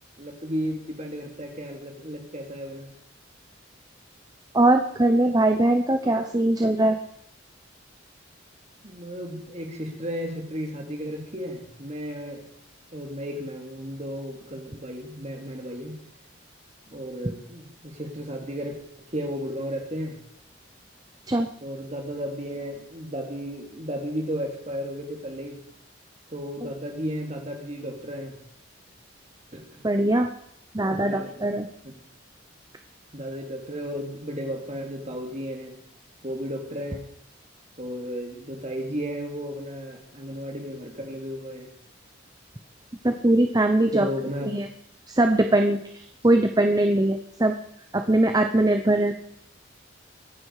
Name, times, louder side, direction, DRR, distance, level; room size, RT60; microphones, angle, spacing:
voice 1, 0.2-2.9 8.8-12.4 12.9-16.0 16.9-18.7 19.1-20.2 21.6-25.6 26.3-28.4 29.5-29.6 30.9-31.4 31.8-32.0 33.1-35.8 36.2-37.1 37.8-41.7 43.9-44.6, equal, 35° right, 2 dB, 3.1 m, -34 dB
voice 2, 4.5-7.0 21.3-21.5 29.8-30.3 30.7-31.7 43.0-44.1 44.5-44.7 45.1-47.5 47.9-49.1, right 1 dB, 20° right, 6 dB, 0.8 m, -21 dB
23.0 x 10.0 x 5.0 m, 0.73 s
head